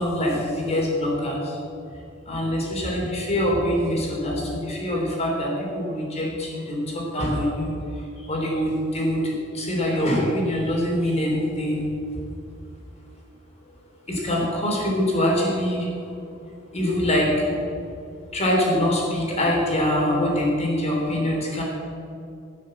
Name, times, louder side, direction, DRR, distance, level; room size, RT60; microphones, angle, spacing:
voice 1, 0.0-1.6 2.2-11.9 14.1-16.1 16.7-17.6 18.3-21.6, left 1 dB, 35° left, -2 dB, 3.3 m, -24 dB
16.0 x 6.6 x 7.4 m, 2.6 s
head